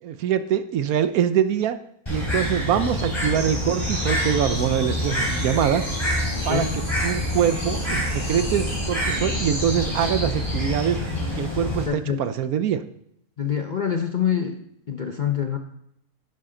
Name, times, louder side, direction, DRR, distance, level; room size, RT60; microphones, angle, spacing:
voice 1, 0.0-1.8 2.1-5.8 6.4-11.0 11.3-12.8, right 9 dB, 70° right, 11 dB, 1.1 m, -24 dB
Bird, 2.1-11.9, left 1 dB, 15° left, 3.9 m, -27 dB
sound 1, 3.3-10.9, equal, 40° right, 4.5 m, -35 dB
voice 2, 11.9-12.2 13.4-14.6 14.9-15.6, left 8 dB, 45° left, 5 dB, 0.6 m, -25 dB
11.0 x 10.5 x 3.8 m, 0.74 s
omnidirectional pair, 1.6 m